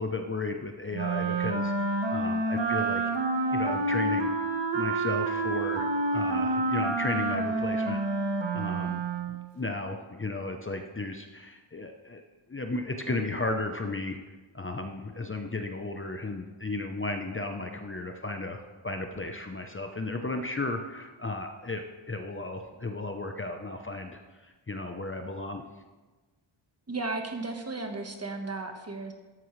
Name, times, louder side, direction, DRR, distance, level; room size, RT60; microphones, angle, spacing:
voice 1, 0.0-3.2 3.5-4.3 4.7-8.0 8.5-9.0 9.3-12.2 12.5-14.2 14.5-25.7, left 2 dB, 25° left, 4 dB, 0.7 m, -34 dB
Wind instrument woodwind instrument, 0.9-9.5, right 3 dB, 60° right, 1.3 m, -28 dB
voice 2, 26.9-29.1, right 3 dB, 30° right, 4 dB, 1.3 m, -34 dB
13.5 x 11.0 x 3.2 m, 1.2 s
wide cardioid pair, 120°, 50 cm